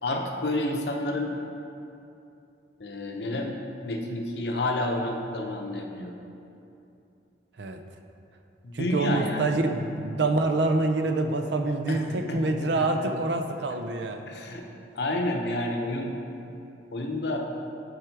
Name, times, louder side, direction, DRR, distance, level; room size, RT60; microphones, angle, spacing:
voice 1, 0.0-1.3 2.8-3.6 3.8-6.1 8.6-9.5 11.9-12.9 14.3-14.7 15.0-16.2 16.9-17.4, left 1 dB, 65° left, 2 dB, 0.8 m, -30 dB
voice 2, 8.7-14.2, right 2 dB, 70° right, 6 dB, 0.5 m, -26 dB
7.8 x 4.9 x 4.6 m, 2.7 s
head